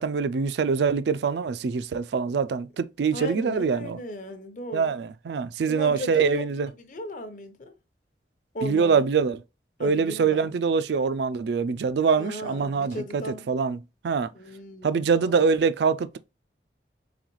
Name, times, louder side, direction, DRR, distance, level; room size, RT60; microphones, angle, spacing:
voice 1, 0.0-4.0 4.7-6.7 8.6-9.4 9.8-13.8 14.0-14.3 14.8-16.2, right 5 dB, 75° right, 0.4 m, -24 dB
voice 2, 3.1-5.0 5.7-7.7 8.5-9.1 9.8-10.5 12.2-13.5 14.3-15.4, left 1 dB, 45° left, 0.7 m, -37 dB
3.9 x 3.7 x 3.1 m
head